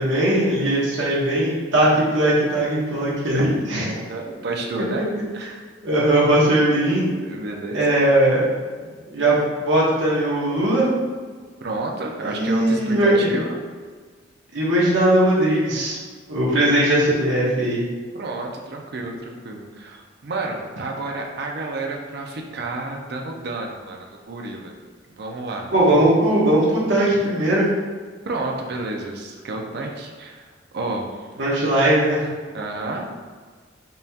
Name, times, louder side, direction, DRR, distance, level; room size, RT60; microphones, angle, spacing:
voice 1, 0.0-3.8 5.8-7.0 7.7-8.5 9.1-10.9 12.2-13.1 14.5-16.0 16.3-17.8 25.7-27.7 31.4-32.3, right 1 dB, 85° right, -7 dB, 1.0 m, -19 dB
voice 2, 3.8-5.0 5.3-5.6 7.2-7.8 11.6-13.5 18.1-24.7 25.1-25.7 28.2-30.5 30.7-31.3 32.5-33.1, right 2 dB, 60° right, 1 dB, 0.5 m, -30 dB
5.3 x 2.3 x 2.8 m, 1.5 s
head